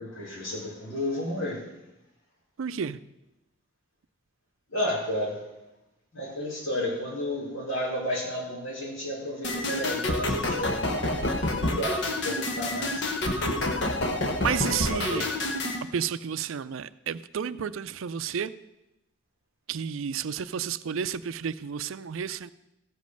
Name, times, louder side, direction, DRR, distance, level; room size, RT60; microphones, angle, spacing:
voice 1, 0.0-1.7 4.7-5.4 6.1-10.8 11.6-13.1 14.8-15.3, left 1 dB, 75° left, -5 dB, 4.8 m, -32 dB
voice 2, 2.6-3.0 14.4-15.3 15.9-18.5 19.7-22.5, right 7 dB, 75° right, 15 dB, 0.4 m, -31 dB
sound 1, 9.4-15.8, left 1 dB, 55° left, 1.0 m, -28 dB
Dishes pots and pans, 13.7-15.7, left 1 dB, 10° left, 1.5 m, -48 dB
14.5 x 5.3 x 6.4 m, 0.93 s
head